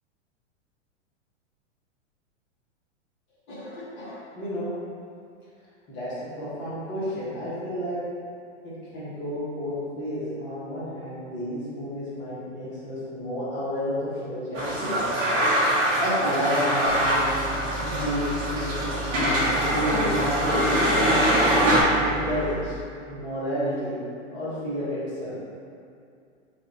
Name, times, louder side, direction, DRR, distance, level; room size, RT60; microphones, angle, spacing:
voice 1, 3.5-4.7 5.9-8.0 8.6-14.9 15.2-15.3 16.0-21.3 21.9-22.8 23.1-24.0 24.3-25.4, equal, 30° left, -10 dB, 1.4 m, -31 dB
sound 1, 14.5-21.8, equal, 70° right, 1.5 m, -23 dB
sound 2, 16.9-22.6, right 2 dB, 10° right, 0.4 m, -36 dB
4.7 x 2.6 x 3.1 m, 2.4 s
hypercardioid pair, 120°, 38 cm